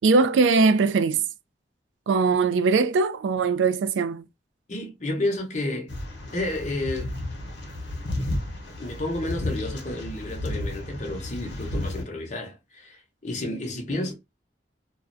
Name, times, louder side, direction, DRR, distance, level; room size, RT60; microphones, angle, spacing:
voice 1, 0.0-1.3 2.1-4.2, right 4 dB, 85° right, 0.3 m, -21 dB
voice 2, 4.7-6.0 6.3-7.2 8.8-14.1, left 1 dB, 40° left, 0.7 m, -31 dB
sound 1, 5.9-12.0, left 1 dB, 80° left, 0.8 m, -32 dB
2.4 x 2.1 x 2.5 m
head